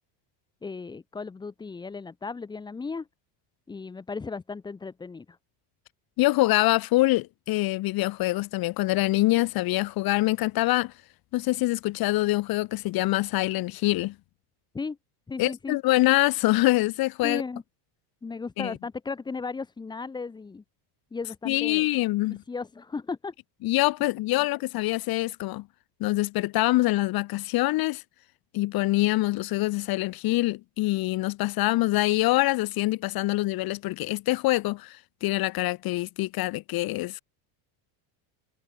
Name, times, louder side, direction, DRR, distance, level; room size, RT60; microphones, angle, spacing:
voice 1, 0.6-3.1 3.7-5.4 14.7-15.0 15.3-15.8 17.2-17.6 18.2-20.6 21.1-21.9 22.3-23.3 24.4-24.5, left 4 dB, 10° left, 0.7 m, -35 dB
voice 2, 6.2-10.9 11.3-14.1 15.4-17.4 18.6-18.7 21.4-22.4 23.6-25.7 26.0-28.0 28.5-37.2, left 18 dB, 45° left, 1.6 m, -25 dB
cardioid pair, 160°, 49 cm